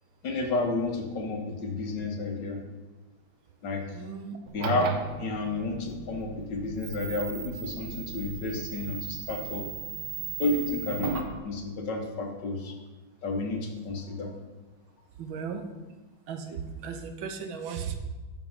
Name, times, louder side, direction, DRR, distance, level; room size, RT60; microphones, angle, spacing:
voice 1, 0.2-2.6 3.6-3.9 4.5-4.9 5.2-9.7 10.4-11.2 11.4-12.7 13.2-14.3, left 3 dB, 60° left, 2 dB, 1.6 m, -31 dB
voice 2, 3.9-4.4 15.2-15.6 16.3-18.0, right 6 dB, 80° right, 7 dB, 1.6 m, -36 dB
sound 1, 4.5-11.4, right 7 dB, 65° right, 1.3 m, -37 dB
7.8 x 6.1 x 5.7 m, 1.2 s
omnidirectional pair, 2.2 m